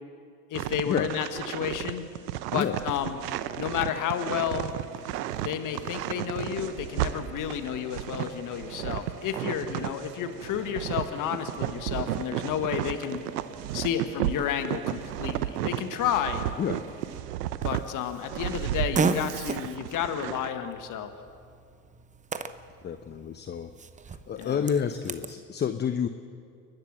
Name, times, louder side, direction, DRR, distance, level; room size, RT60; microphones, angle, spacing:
voice 1, 0.5-2.0 2.5-3.2 3.6-4.7 5.4-13.2 13.7-16.4 17.6-21.1 24.4-24.6, left 9 dB, 40° left, 8 dB, 1.7 m, -31 dB
sound 1, 0.5-10.1 10.4-17.8 18.2-20.5, right 13 dB, 70° right, 1.0 m, -33 dB
sound 2, 2.6-17.2, right 5 dB, 45° right, 2.9 m, -47 dB
Fart, 17.6-25.3, right 4 dB, 15° right, 0.9 m, -35 dB
voice 2, 22.8-23.7 24.3-26.1, left 8 dB, 20° left, 9 dB, 0.8 m, -29 dB
29.5 x 12.0 x 7.6 m, 2.3 s
hypercardioid pair, 95°, 49 cm